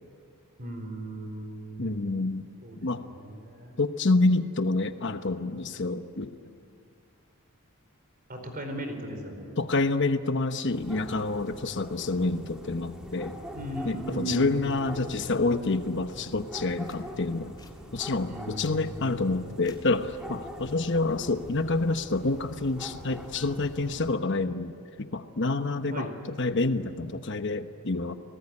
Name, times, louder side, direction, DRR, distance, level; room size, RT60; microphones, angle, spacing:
voice 1, 0.6-2.3 2.6-3.8 8.3-9.5 13.5-14.6 18.2-19.5 25.9-26.1, right 1 dB, 40° right, 5 dB, 4.7 m, -38 dB
voice 2, 1.8-2.5 2.8-3.0 3.8-6.3 9.6-13.4 13.9-17.6 17.9-26.1 26.4-28.2, left 3 dB, 55° left, 9 dB, 1.1 m, -28 dB
sound 1, 10.7-24.1, equal, 5° right, 2.6 m, -43 dB
sound 2, 16.7-17.0 17.6-17.8 18.4-18.8 19.6-19.8 21.1-21.4, left 3 dB, 20° left, 2.7 m, -54 dB
30.0 x 19.0 x 9.9 m, 2.2 s
head